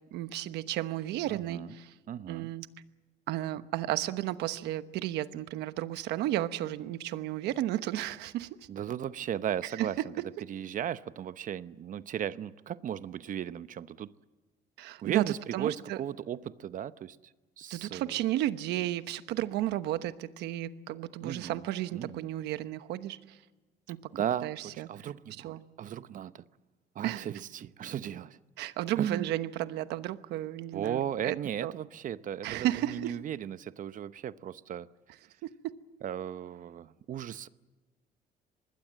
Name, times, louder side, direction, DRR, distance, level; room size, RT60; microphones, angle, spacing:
voice 1, 0.1-1.9 2.3-2.7 3.3-8.7 9.8-9.9 14.8-16.0 17.7-23.4 23.9-24.0 24.4-24.9 25.4-25.6 27.0-27.3 28.6-31.7 32.4-33.2 35.4-35.8, right 14 dB, 85° right, 1.1 m, -33 dB
voice 2, 1.3-1.7 2.1-2.5 8.7-10.1 10.5-14.1 15.0-17.2 17.6-18.2 21.2-21.6 21.9-22.3 24.1-26.4 26.9-28.4 29.0-29.3 30.7-34.9 36.0-37.5, right 10 dB, 50° right, 0.8 m, -36 dB
25.0 x 20.5 x 7.5 m
cardioid pair, 110°, 17 cm